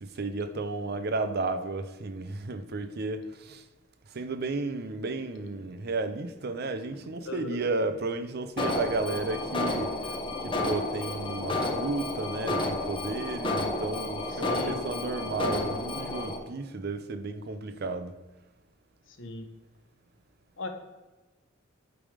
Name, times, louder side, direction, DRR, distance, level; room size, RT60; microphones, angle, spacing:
voice 1, 0.0-3.7 4.1-18.1, right 3 dB, 55° right, 0.6 m, -33 dB
voice 2, 7.2-7.6 14.3-14.8 19.2-19.5 20.6-20.7, left 2 dB, 70° left, 1.0 m, -38 dB
Alarm, 8.6-16.4, left 2 dB, 25° left, 1.0 m, -31 dB
8.6 x 3.5 x 4.9 m
head